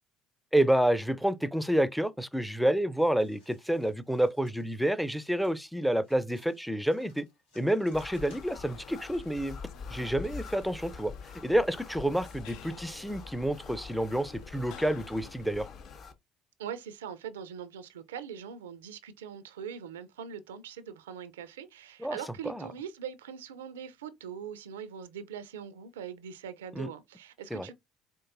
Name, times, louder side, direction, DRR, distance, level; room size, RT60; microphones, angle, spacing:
voice 1, 0.5-7.2 7.6-9.6 9.9-11.1 11.4-15.7 22.0-22.2 22.4-22.7 26.8-26.9 27.5-27.7, right 1 dB, ahead, 0.4 m, -29 dB
sound 1, 3.0-8.9, left 2 dB, 85° left, 1.5 m, -62 dB
sound 2, 7.9-16.1, left 5 dB, 45° left, 0.8 m, -45 dB
sound 3, 8.2-16.0, left 10 dB, 65° left, 0.3 m, -52 dB
voice 2, 16.6-27.7, right 8 dB, 85° right, 0.4 m, -42 dB
4.5 x 2.6 x 2.5 m
hypercardioid pair, 65°, 0 cm